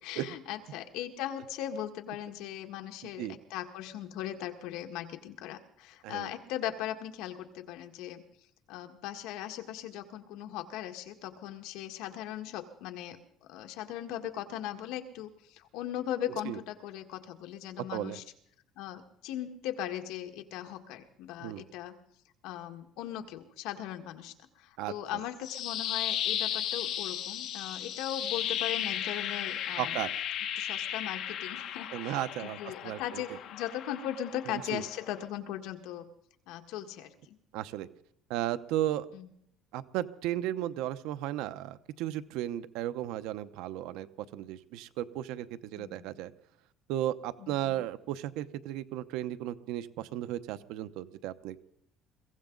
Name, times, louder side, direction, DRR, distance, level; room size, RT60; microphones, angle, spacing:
voice 1, 0.0-8.2 8.7-18.2 18.8-21.9 22.4-30.0 30.5-36.1 36.5-37.4 39.1-39.3 45.7-46.1 47.4-47.7, left 11 dB, 85° left, 5 dB, 1.7 m, -39 dB
voice 2, 3.0-3.4 6.0-6.3 16.4-16.6 17.9-18.2 21.4-21.6 24.8-24.9 29.8-30.1 31.9-32.6 32.8-33.2 34.5-34.8 37.5-37.9 38.3-39.1 39.7-46.3 46.9-51.7, right 13 dB, 85° right, 12 dB, 0.9 m, -35 dB
sound 1, 25.2-35.3, left 10 dB, 60° left, 2.0 m, -35 dB
22.5 x 16.0 x 3.9 m, 0.71 s
cardioid pair, 150°, 0 cm